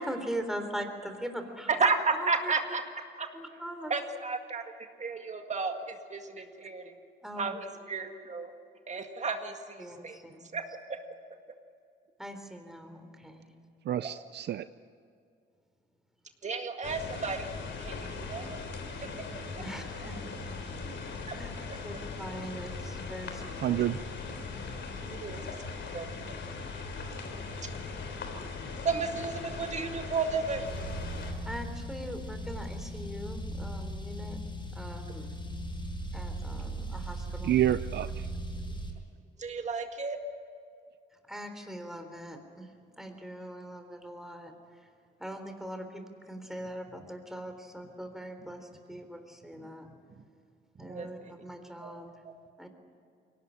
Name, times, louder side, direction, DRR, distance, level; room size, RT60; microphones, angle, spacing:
voice 1, 0.0-1.7 2.2-2.5 3.3-3.9 6.4-6.5 7.2-7.5 9.8-10.6 12.2-13.5 19.6-20.8 21.3-21.5 21.8-23.8 25.0-25.1 27.9-28.0 31.5-34.4 34.7-35.3 36.1-37.5 41.3-42.7 43.0-44.5 45.2-49.9 50.8-52.1 52.6-52.7, equal, ahead, 6 dB, 3.5 m, -41 dB
voice 2, 1.7-2.8 3.2-3.3 3.9-4.6 5.0-6.8 7.4-8.5 8.9-10.2 10.5-10.6 14.0-14.1 16.4-17.5 17.8-18.6 20.0-20.1 21.3-21.4 25.1-25.6 25.9-26.4 28.8-30.7 39.4-40.2 50.8-51.3 51.8-51.9, right 4 dB, 35° right, 5 dB, 2.0 m, -32 dB
voice 3, 13.8-14.7 23.6-24.0 37.4-38.3, right 12 dB, 60° right, 14 dB, 0.5 m, -28 dB
sound 1, 16.8-31.3, left 4 dB, 65° left, 3.5 m, -39 dB
Car, 30.7-38.9, right 1 dB, 25° left, 6.7 m, -38 dB
22.5 x 18.0 x 9.9 m, 2.4 s
cardioid pair, 90°, 20 cm